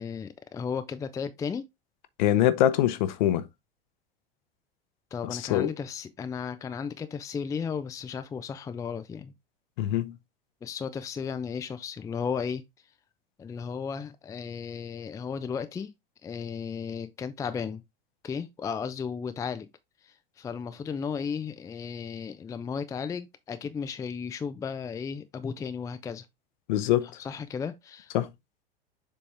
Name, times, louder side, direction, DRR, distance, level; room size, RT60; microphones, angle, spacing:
voice 1, 0.0-1.7 5.1-9.3 10.6-12.6 13.4-15.9 16.2-17.8 18.2-19.7 20.0-26.3 27.0-28.1, left 6 dB, 10° left, 0.5 m, -34 dB
voice 2, 2.2-3.4 5.3-5.7 9.8-10.1 26.7-27.1 28.1-28.3, left 12 dB, 50° left, 0.8 m, -24 dB
7.1 x 4.2 x 3.4 m
figure-of-eight pair, 85°, 29 cm